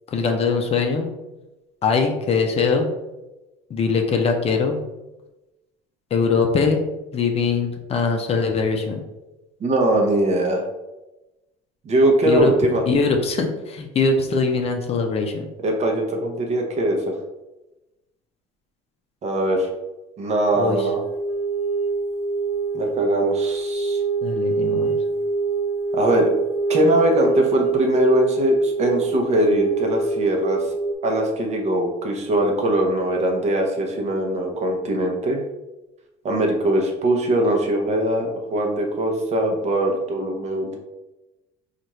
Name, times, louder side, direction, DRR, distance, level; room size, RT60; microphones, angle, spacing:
voice 1, 0.1-1.1 1.8-2.9 3.7-4.8 6.1-6.8 7.1-9.0 12.2-12.5 12.9-15.5 20.6-20.9 24.2-25.0, left 4 dB, 35° left, 3 dB, 0.5 m, -21 dB
voice 2, 9.6-10.6 11.8-12.8 15.6-17.1 19.2-19.7 20.2-21.0 22.7-24.0 25.9-26.3 26.7-30.6 31.0-35.4 36.2-40.8, right 1 dB, 40° right, 2 dB, 0.8 m, -21 dB
sound 1, 20.5-31.0, right 4 dB, 85° right, 0.8 m, -24 dB
4.1 x 2.5 x 3.0 m, 1.0 s
cardioid pair, 115°, 17 cm